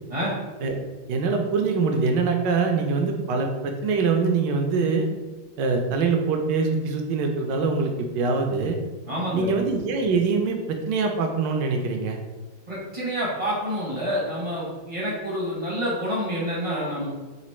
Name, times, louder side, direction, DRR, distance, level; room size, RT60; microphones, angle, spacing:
voice 1, 1.1-5.1 5.6-8.8 9.3-12.2, right 4 dB, 75° right, 3 dB, 1.2 m, -24 dB
voice 2, 9.1-9.5 12.7-17.1, equal, 30° right, -6 dB, 0.7 m, -28 dB
4.0 x 2.5 x 4.3 m, 1.2 s
omnidirectional pair, 2.1 m